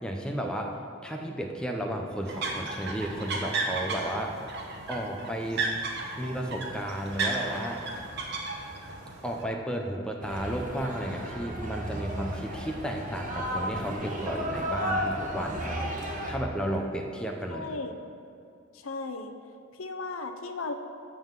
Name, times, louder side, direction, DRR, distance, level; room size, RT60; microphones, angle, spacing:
voice 1, 0.0-0.8 1.0-4.4 4.9-5.7 6.2-7.9 9.2-15.9 16.3-17.7, right 1 dB, 5° left, 1 dB, 0.6 m, -33 dB
sound 1, 2.3-9.4, right 3 dB, 55° right, 1.0 m, -34 dB
sound 2, 10.2-16.3, equal, 35° right, 1.2 m, -33 dB
voice 2, 17.5-18.0 18.7-19.3 19.7-20.7, left 3 dB, 75° left, 7 dB, 0.6 m, -36 dB
11.0 x 3.8 x 7.3 m, 2.5 s
head